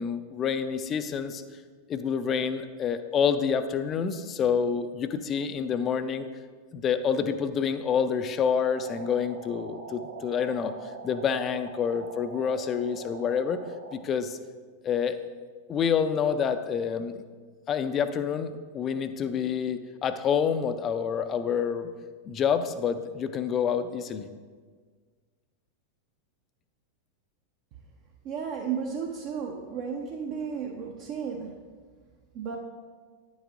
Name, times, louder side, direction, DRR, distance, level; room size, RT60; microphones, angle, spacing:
voice 1, 0.0-1.4 1.9-6.3 6.7-10.7 11.0-13.6 13.9-14.4 14.8-15.2 15.7-17.2 17.7-21.9 22.3-24.3, left 7 dB, 30° left, 11 dB, 0.5 m, -28 dB
sound 1, 8.6-14.0, right 3 dB, 70° right, 0.9 m, -43 dB
voice 2, 28.2-31.5 32.3-32.6, right 6 dB, 40° right, 0 dB, 0.7 m, -33 dB
9.7 x 7.2 x 2.5 m, 1.5 s
figure-of-eight pair, 90°, 0 cm